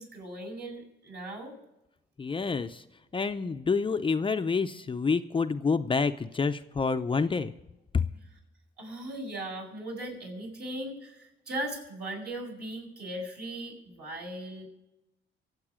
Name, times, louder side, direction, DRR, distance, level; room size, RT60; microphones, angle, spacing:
voice 1, 0.0-1.5 8.8-14.7, right 1 dB, 55° right, -1 dB, 6.8 m, -38 dB
voice 2, 2.2-2.8 3.1-7.5, left 4 dB, 25° left, 8 dB, 0.6 m, -28 dB
24.5 x 8.2 x 5.0 m, 0.95 s
cardioid pair, 90°, 20 cm